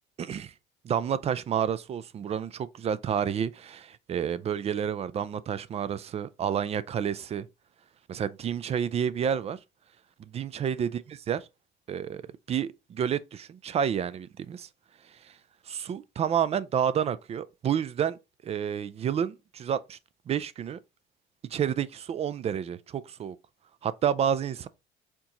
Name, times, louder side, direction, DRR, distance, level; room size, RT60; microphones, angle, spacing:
voice 1, 0.2-0.5 0.8-7.5 8.1-9.6 10.2-11.5 11.9-12.2 12.5-14.7 15.7-18.2 18.4-20.0 20.3-20.8 21.5-23.4 23.8-24.7, right 8 dB, 35° right, 0.4 m, -29 dB
4.4 x 2.9 x 3.8 m
cardioid pair, 115°, 19 cm